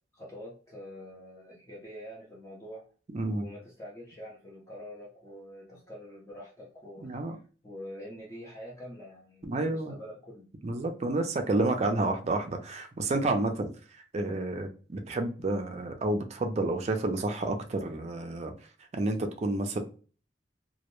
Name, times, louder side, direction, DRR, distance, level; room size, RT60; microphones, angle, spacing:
voice 1, 0.1-2.8 3.3-7.2 7.6-10.5, equal, 15° left, 0.6 m, -45 dB
voice 2, 3.1-3.4 7.0-7.4 9.4-9.9 10.6-13.7 14.1-18.5 18.9-19.8, right 2 dB, 35° right, 0.4 m, -30 dB
2.2 x 2.0 x 2.9 m
head